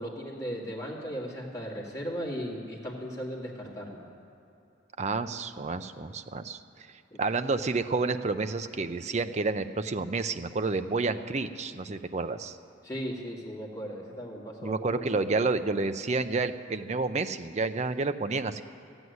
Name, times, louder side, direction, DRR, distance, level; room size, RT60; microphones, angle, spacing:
voice 1, 0.0-4.1 7.1-7.2 12.8-15.4, equal, 20° left, -5 dB, 2.2 m, -37 dB
voice 2, 5.0-6.6 7.2-12.6 14.6-18.6, right 3 dB, 35° right, 10 dB, 0.5 m, -29 dB
14.0 x 8.0 x 9.5 m, 2.8 s
head